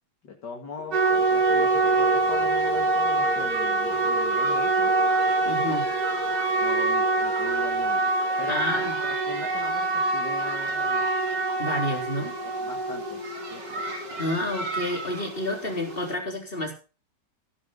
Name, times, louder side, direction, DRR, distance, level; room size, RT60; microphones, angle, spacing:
voice 1, 0.2-4.9 6.6-11.1 12.2-13.8, left 4 dB, 70° left, 2 dB, 2.9 m, -40 dB
sound 1, 0.8-8.4, equal, ahead, 1.5 m, -37 dB
sound 2, 0.9-16.1, right 3 dB, 75° right, 3.7 m, -25 dB
voice 2, 5.4-5.9 8.5-8.9 11.6-12.4 14.2-16.7, left 1 dB, 30° left, 2 dB, 4.3 m, -29 dB
17.0 x 10.5 x 4.0 m, 0.34 s
omnidirectional pair, 1.9 m